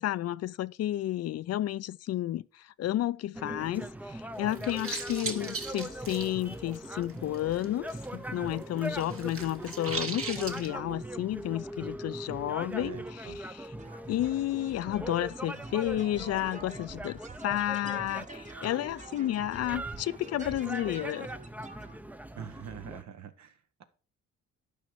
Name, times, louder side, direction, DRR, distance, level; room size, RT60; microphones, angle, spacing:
voice 1, 0.0-13.7 14.1-21.3, left 13 dB, 55° left, 0.4 m, -32 dB
sound 1, 3.3-23.0, right 1 dB, 5° right, 0.5 m, -41 dB
sound 2, 4.4-8.1 8.3-10.7, right 4 dB, 45° right, 1.7 m, -39 dB
voice 2, 12.8-13.4 22.3-23.5, right 8 dB, 65° right, 1.1 m, -44 dB
sound 3, 13.8-22.0, right 4 dB, 25° right, 1.0 m, -48 dB
11.5 x 5.1 x 4.6 m
cardioid pair, 90°, 30 cm